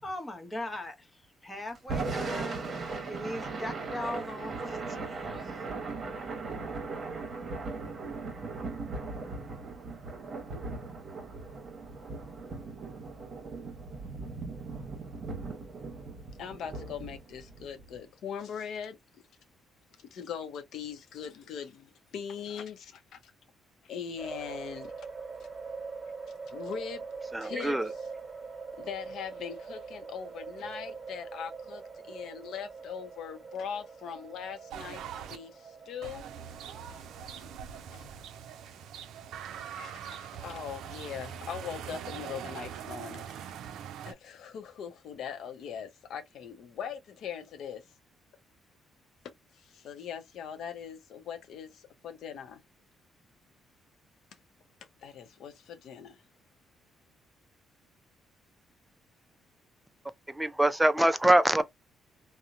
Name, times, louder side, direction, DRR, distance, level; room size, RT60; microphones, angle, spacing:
voice 1, 0.0-2.6 3.1-5.6, left 1 dB, 20° left, 0.9 m, -39 dB
Thunder / Rain, 1.8-18.0, right 3 dB, 45° right, 0.9 m, -38 dB
voice 2, 16.4-19.0 20.0-23.2 23.8-25.1 25.4-25.5 26.5-27.0 27.4-27.7 28.8-35.0 35.3-36.3 36.9-37.4 37.9-38.1 39.7-43.3 44.0-47.8 49.5-52.6 55.0-56.2, left 7 dB, 75° left, 0.6 m, -41 dB
sound 1, 24.2-41.1, right 4 dB, 30° right, 1.2 m, -44 dB
voice 3, 27.3-27.9 60.3-61.6, right 1 dB, 10° right, 0.4 m, -24 dB
sound 2, 34.7-35.4 36.0-44.1, right 8 dB, 80° right, 0.4 m, -42 dB
2.8 x 2.0 x 2.4 m
cardioid pair, 90°, 0 cm